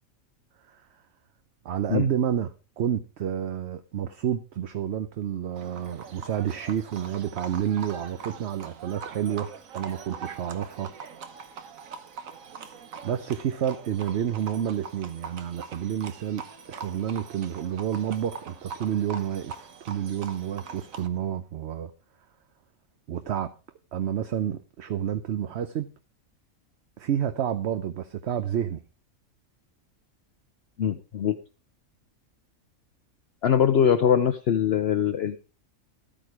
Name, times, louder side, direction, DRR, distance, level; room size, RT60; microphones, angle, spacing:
voice 1, 1.6-10.9 13.0-21.9 23.1-23.5 23.9-25.9 27.0-28.8, right 9 dB, 60° right, 10 dB, 0.9 m, -29 dB
Livestock farm animals working animals, 5.6-21.1, right 6 dB, 80° right, 1.5 m, -42 dB
voice 2, 30.8-31.4 33.4-35.4, left 8 dB, 55° left, 8 dB, 0.9 m, -22 dB
12.0 x 8.9 x 4.8 m, 0.34 s
omnidirectional pair, 1.4 m